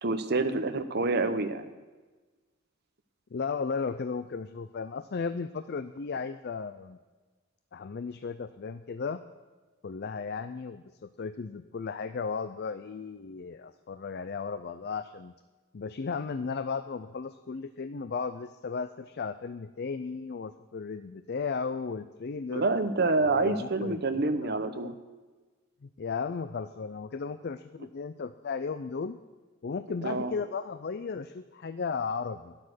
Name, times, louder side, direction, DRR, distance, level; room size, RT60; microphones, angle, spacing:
voice 1, 0.0-1.7 22.5-24.9 30.0-30.3, right 3 dB, 45° right, 9 dB, 0.8 m, -27 dB
voice 2, 3.3-7.0 7.7-9.2 9.8-15.3 15.7-22.7 23.3-24.9 26.0-29.2 29.6-32.6, left 5 dB, 45° left, 11 dB, 0.4 m, -35 dB
12.5 x 9.9 x 6.4 m, 1.3 s
head